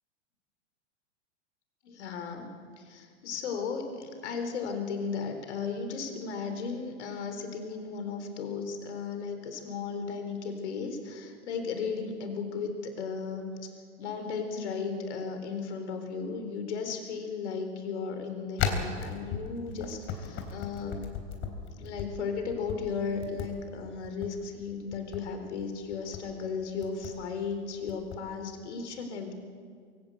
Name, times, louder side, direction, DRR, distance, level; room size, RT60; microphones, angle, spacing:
voice 1, 1.8-2.5 2.8-13.5 14.0-21.1 21.8-29.3, left 5 dB, 65° left, 6 dB, 4.1 m, -35 dB
plastic bottle, 18.6-22.1 22.5-22.8 23.2-23.5 24.0-24.3 24.9-25.2 25.9-26.2 26.8-27.1 27.9-28.2, left 7 dB, 35° left, 3.7 m, -34 dB
23.5 x 16.5 x 8.0 m, 2.1 s
hypercardioid pair, 105°, 36 cm